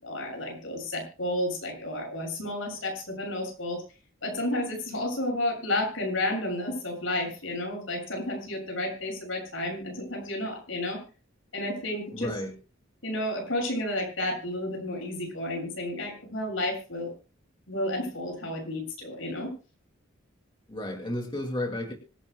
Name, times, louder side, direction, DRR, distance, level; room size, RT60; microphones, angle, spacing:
voice 1, 0.0-3.8 4.2-11.0 11.5-12.3 13.0-17.1 17.7-19.5, left 1 dB, 75° left, 1 dB, 7.3 m, -31 dB
voice 2, 12.1-12.5 20.7-21.9, left 1 dB, 25° left, 2 dB, 2.4 m, -32 dB
25.5 x 11.0 x 2.3 m, 0.35 s
head